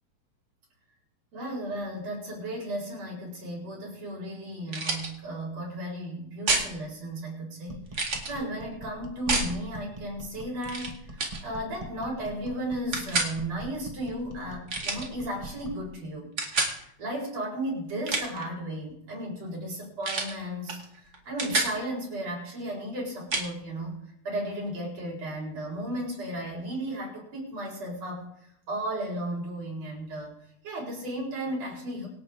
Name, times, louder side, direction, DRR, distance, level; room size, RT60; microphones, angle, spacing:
voice 1, 1.3-28.3 28.7-30.3 30.6-32.1, right 1 dB, 60° right, -3 dB, 5.8 m, -35 dB
sound 1, 4.7-5.1 6.5-6.7 7.9-8.3 9.3-9.5 10.6-10.9 11.2-11.4 12.9-13.3 14.7-15.1 16.4-16.8 17.9-18.4 20.0-20.3 20.7-20.8 21.1-21.7 23.3-23.5, right 3 dB, 35° right, 2.3 m, -28 dB
sound 2, 7.7-15.9, right 2 dB, 15° right, 1.3 m, -43 dB
25.5 x 8.7 x 3.8 m, 0.74 s
omnidirectional pair, 3.3 m